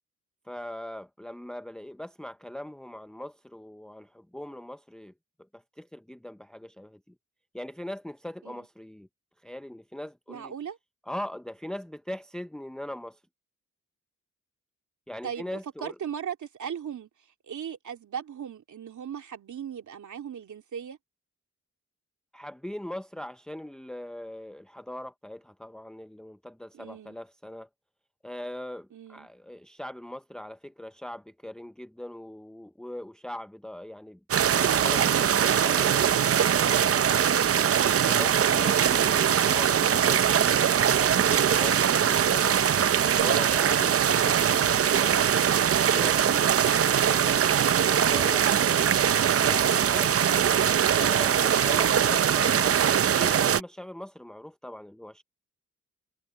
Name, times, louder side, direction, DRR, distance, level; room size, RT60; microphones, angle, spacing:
voice 1, 0.4-5.1 5.5-7.1 7.5-9.1 9.4-10.5 11.0-13.2 15.1-15.9 22.3-27.7 28.2-34.2 34.5-37.4 38.0-42.8 43.1-45.3 45.8-47.5 47.9-48.8 49.4-50.2 50.9-55.2, left 1 dB, ahead, 0.7 m, -41 dB
voice 2, 10.3-10.8 15.2-15.5 15.8-17.1 17.4-21.0 26.7-27.2 28.9-29.3, right 8 dB, 75° right, 3.0 m, -38 dB
sound 1, 34.3-53.6, right 8 dB, 50° right, 0.6 m, -22 dB
cardioid pair, 90°, 30 cm